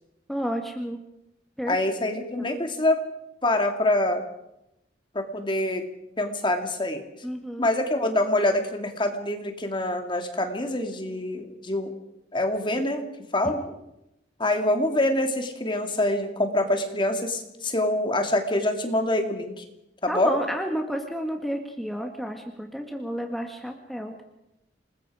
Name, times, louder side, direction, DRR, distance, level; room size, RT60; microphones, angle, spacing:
voice 1, 0.3-1.0 1.6-1.8 2.4-2.5 7.2-7.7 13.4-13.7 20.1-24.2, equal, ahead, 3 dB, 1.8 m, -31 dB
voice 2, 1.7-3.0 3.4-4.2 5.1-5.9 6.2-7.0 7.6-11.9 12.3-13.1 13.3-13.6 14.4-19.6 20.0-20.4, left 1 dB, 25° left, 5 dB, 2.5 m, -25 dB
28.0 x 20.5 x 5.0 m, 0.87 s
head